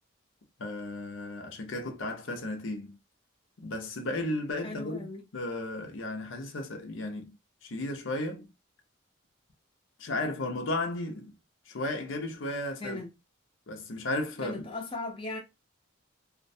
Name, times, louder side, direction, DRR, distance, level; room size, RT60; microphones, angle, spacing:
voice 1, 0.6-3.0 3.6-5.1 5.3-7.3 7.6-8.5 10.0-11.3 11.7-13.0 13.7-14.7, left 2 dB, 75° left, 0.6 m, -34 dB
voice 2, 4.6-5.3 12.8-13.1 14.4-15.4, left 2 dB, 25° left, 0.5 m, -37 dB
2.5 x 2.1 x 2.6 m
head